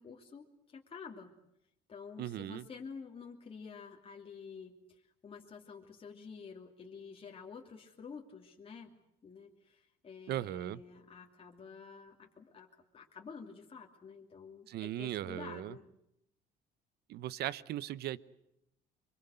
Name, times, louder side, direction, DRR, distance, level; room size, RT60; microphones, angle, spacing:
voice 1, 0.0-1.3 1.9-8.9 9.2-15.8, left 5 dB, 35° left, 1 dB, 2.7 m, -50 dB
voice 2, 2.2-2.6 10.3-10.8 14.7-15.7 17.1-18.2, right 13 dB, 75° right, 19 dB, 0.9 m, -38 dB
24.0 x 24.0 x 8.0 m, 0.81 s
cardioid pair, 110°, 17 cm